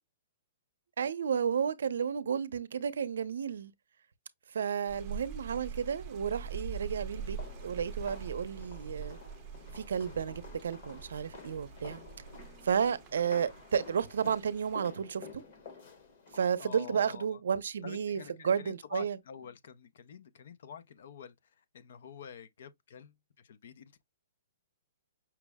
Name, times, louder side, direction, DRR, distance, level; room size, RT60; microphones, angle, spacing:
voice 1, 1.0-3.7 4.5-7.4 7.6-9.2 9.7-12.0 12.6-15.4 16.3-19.2, right 7 dB, 75° right, 0.6 m, -32 dB
sound 1, 4.9-14.8, right 6 dB, 15° right, 0.7 m, -44 dB
sound 2, 7.1-16.7, left 3 dB, 35° left, 1.0 m, -50 dB
voice 2, 16.6-17.4 17.8-21.3 21.7-24.0, left 7 dB, 55° left, 0.5 m, -48 dB
5.8 x 2.0 x 3.4 m
hypercardioid pair, 175°, 0 cm